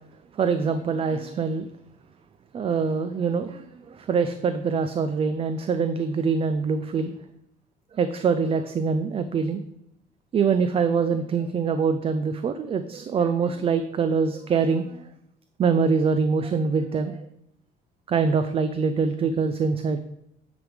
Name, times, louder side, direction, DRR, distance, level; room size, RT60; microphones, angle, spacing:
voice 1, 0.3-1.7 2.5-7.1 7.9-9.6 10.3-15.0 15.6-17.3 18.1-20.0, right 5 dB, 35° right, 10 dB, 0.4 m, -24 dB
9.4 x 3.5 x 4.9 m, 0.81 s
cardioid pair, 110°, 17 cm